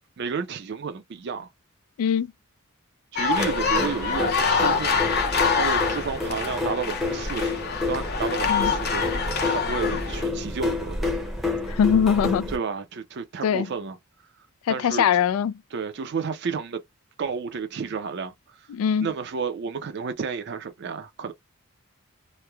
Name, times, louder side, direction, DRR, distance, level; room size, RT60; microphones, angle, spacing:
voice 1, 0.2-1.5 3.1-11.1 12.5-14.0 14.7-15.2 15.7-16.8 17.2-18.7 19.0-21.3, right 5 dB, 50° right, 0.4 m, -32 dB
sound 1, 3.2-10.3, left 5 dB, 50° left, 0.6 m, -26 dB
sound 2, 3.4-12.6, left 2 dB, ahead, 0.6 m, -29 dB
voice 2, 11.7-12.5 13.4-13.7 14.7-15.6 18.7-19.1, left 7 dB, 80° left, 0.3 m, -22 dB
3.0 x 2.0 x 2.2 m
head